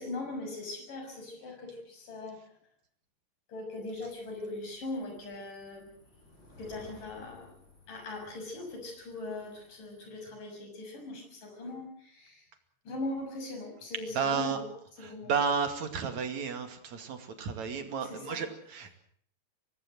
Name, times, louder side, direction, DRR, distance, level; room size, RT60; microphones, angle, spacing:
voice 1, 0.0-2.4 3.5-6.0 6.6-7.6 7.9-12.5 12.8-14.7 15.0-15.3 18.0-18.4, left 2 dB, 50° left, 3 dB, 8.2 m, -40 dB
sound 1, 3.7-10.0, left 2 dB, 25° left, 7.3 m, -58 dB
voice 2, 14.1-14.6 15.0-18.9, right 6 dB, 50° right, 7 dB, 3.3 m, -32 dB
24.5 x 18.5 x 7.7 m, 0.63 s
omnidirectional pair, 4.7 m